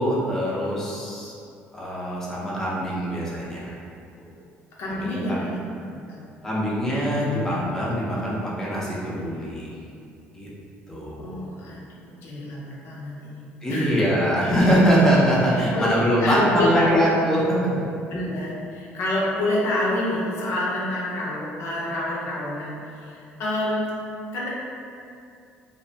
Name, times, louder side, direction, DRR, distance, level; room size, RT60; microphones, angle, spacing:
voice 1, 0.0-1.3 1.7-3.8 4.9-5.4 6.4-9.7 10.3-10.5 10.9-11.4 13.6-17.6, equal, 10° left, -7 dB, 0.6 m, -23 dB
voice 2, 4.8-5.6 5.9-6.2 11.2-14.0 15.7-15.9 16.2-17.0 18.1-24.0 24.3-24.5, left 1 dB, 65° left, -6 dB, 0.6 m, -28 dB
2.6 x 2.1 x 2.7 m, 2.5 s
cardioid pair, 105°, 4 cm